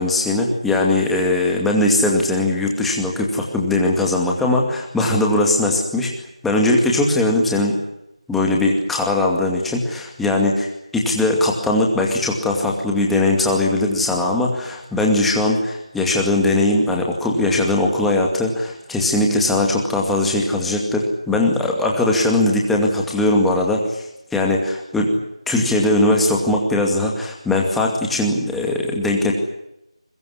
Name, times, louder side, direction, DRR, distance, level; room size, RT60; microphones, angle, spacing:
voice 1, 0.0-6.1 6.4-7.8 8.3-25.1 25.5-29.3, left 2 dB, ahead, -1 dB, 2.3 m, -20 dB
23.0 x 20.5 x 9.8 m, 0.85 s
figure-of-eight pair, 170°, 3 cm